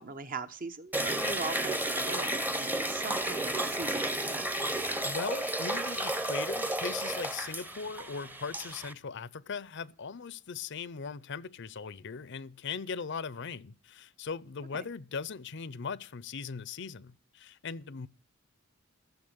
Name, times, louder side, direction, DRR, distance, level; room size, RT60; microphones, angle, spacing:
voice 1, 0.0-4.8 14.7-14.9, right 3 dB, 40° right, 1.0 m, -41 dB
sound 1, 0.9-8.9, right 1 dB, 10° right, 0.9 m, -32 dB
voice 2, 5.0-18.1, left 5 dB, 55° left, 0.6 m, -39 dB
13.5 x 7.2 x 8.0 m
head